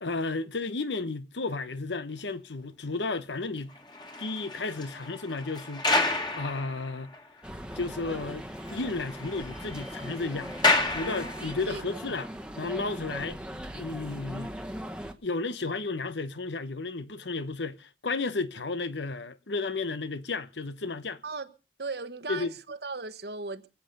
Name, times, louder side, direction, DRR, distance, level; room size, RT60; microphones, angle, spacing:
voice 1, 0.0-3.8 4.2-5.9 6.3-7.1 7.7-8.5 8.7-12.3 12.6-13.4 13.7-14.6 15.2-21.2 22.3-22.5, left 3 dB, 85° left, 1.0 m, -33 dB
sound 1, 3.7-7.4 7.7-7.8 8.2-8.3 8.5-11.8 12.5-12.7, left 2 dB, 25° left, 2.1 m, -31 dB
sound 2, 7.4-15.1, equal, 5° right, 1.1 m, -40 dB
voice 2, 11.0-11.3 11.7-11.8 21.2-21.5 21.8-23.7, right 3 dB, 65° right, 1.2 m, -37 dB
23.5 x 8.2 x 6.6 m
head